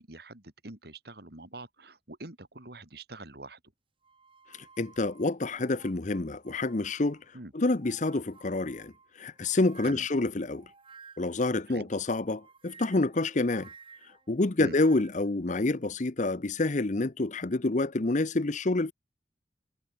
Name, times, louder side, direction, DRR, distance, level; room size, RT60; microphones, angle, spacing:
voice 1, 0.0-3.6 7.3-7.5 9.8-10.1 11.7-11.9 14.6-14.8, right 2 dB, 60° right, 3.5 m, -44 dB
sound 1, 4.0-7.3 7.7-11.5 12.3-15.3, right 5 dB, 30° right, 6.7 m, -55 dB
voice 2, 4.8-7.2 7.5-10.7 11.2-13.7 14.3-18.9, left 2 dB, 45° left, 0.8 m, -28 dB
head